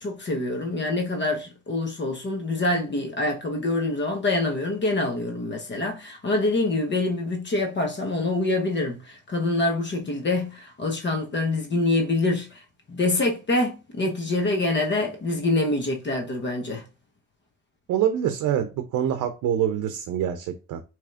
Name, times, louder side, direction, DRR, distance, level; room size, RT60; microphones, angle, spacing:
voice 1, 0.0-12.6 12.9-16.8, left 2 dB, 40° left, 1.0 m, -25 dB
voice 2, 17.9-20.8, right 10 dB, 80° right, 0.6 m, -25 dB
4.9 x 3.0 x 2.4 m
cardioid pair, 90°, 30 cm